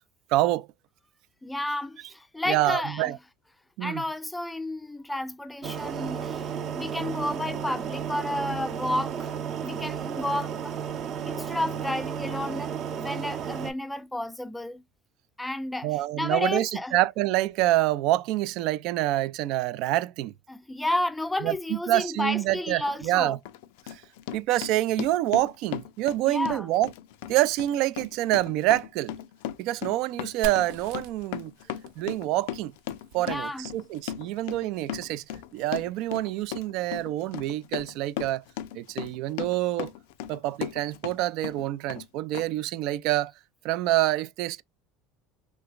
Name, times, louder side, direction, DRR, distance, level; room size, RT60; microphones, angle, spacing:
voice 1, 0.3-0.7 2.5-3.2 3.8-4.0 15.8-20.3 21.4-23.4 23.9-24.0 24.3-26.9 27.3-29.1 29.6-31.5 32.0-32.7 33.1-35.2 35.5-38.4 38.8-39.9 40.3-43.3 43.6-44.6, right 15 dB, 65° right, 0.3 m, -26 dB
voice 2, 1.4-3.2 3.8-9.3 9.6-10.8 11.2-14.8 15.4-15.9 16.2-17.0 20.5-23.4 26.2-26.7 33.2-33.7, left 1 dB, 5° left, 0.4 m, -31 dB
sound 1, 5.6-13.7, right 8 dB, 45° right, 0.7 m, -33 dB
Run, 22.8-23.0 23.5-41.2 41.4-42.1 42.3-42.4, left 11 dB, 85° left, 0.4 m, -37 dB
Fire, 30.4-34.1, right 3 dB, 85° right, 0.8 m, -44 dB
3.3 x 3.0 x 2.3 m
supercardioid pair, 115°, 0 cm